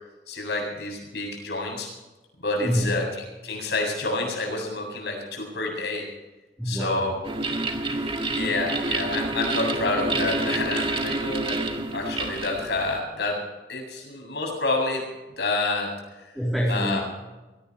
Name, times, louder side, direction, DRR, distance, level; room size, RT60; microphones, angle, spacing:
voice 1, 0.3-1.9 2.4-6.1 6.6-7.2 7.9-13.4 13.7-15.0 15.4-15.9 16.2-16.3 16.7-17.0, left 2 dB, 65° left, 0 dB, 7.9 m, -28 dB
voice 2, 2.6-2.9 6.6-7.1 16.3-17.0, equal, ahead, -5 dB, 3.8 m, -26 dB
sound 1, 7.2-13.0, right 2 dB, 30° right, 1.9 m, -28 dB
23.5 x 18.0 x 3.3 m, 1.1 s
head